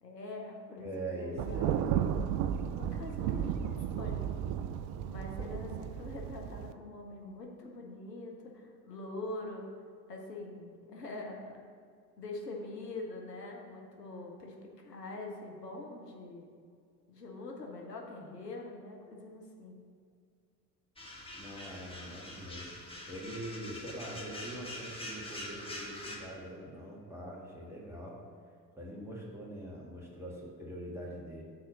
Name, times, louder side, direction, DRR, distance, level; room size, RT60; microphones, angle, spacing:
voice 1, 0.0-1.8 2.7-4.3 5.1-9.6 10.1-11.6 12.2-16.5 17.1-19.8, left 2 dB, 85° left, 0 dB, 0.8 m, -44 dB
voice 2, 0.8-1.8 21.3-22.7 23.1-28.2 28.8-31.4, right 1 dB, 5° right, -3 dB, 1.6 m, -43 dB
Thunder, 1.4-6.7, right 9 dB, 40° right, 0.4 m, -34 dB
sound 1, 21.0-26.2, left 1 dB, 10° left, 1.3 m, -44 dB
6.2 x 4.2 x 6.0 m, 2.2 s
figure-of-eight pair, 60°, 47 cm